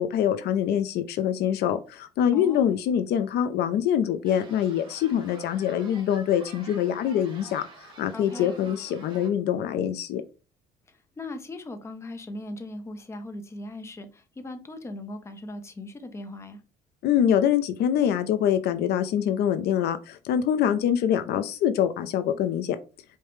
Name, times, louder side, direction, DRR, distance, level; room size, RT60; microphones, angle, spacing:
voice 1, 0.0-7.6 8.0-10.2 17.0-22.8, left 9 dB, 70° left, 0.4 m, -24 dB
voice 2, 2.3-2.6 8.1-8.5 10.9-16.6, left 2 dB, 15° left, 0.6 m, -39 dB
sound 1, 4.2-9.3, right 2 dB, 30° right, 1.6 m, -48 dB
4.8 x 2.1 x 3.1 m
cardioid pair, 115°, 18 cm